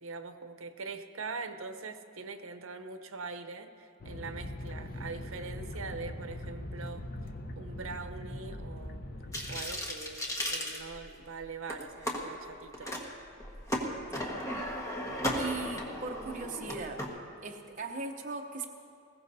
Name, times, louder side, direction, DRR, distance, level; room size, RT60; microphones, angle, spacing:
voice 1, 0.0-7.1 7.6-9.1 9.5-13.0, right 4 dB, 70° right, 8 dB, 0.8 m, -42 dB
sound 1, 4.0-9.6, left 1 dB, 45° left, 0.8 m, -41 dB
sound 2, 9.3-11.3 11.7-12.2 12.7-13.0 13.4-17.1, equal, 15° left, 1.4 m, -35 dB
voice 2, 14.1-14.5 15.4-17.0 17.4-18.6, right 4 dB, 35° right, 1 dB, 0.8 m, -39 dB
20.5 x 16.5 x 2.7 m, 2.4 s
head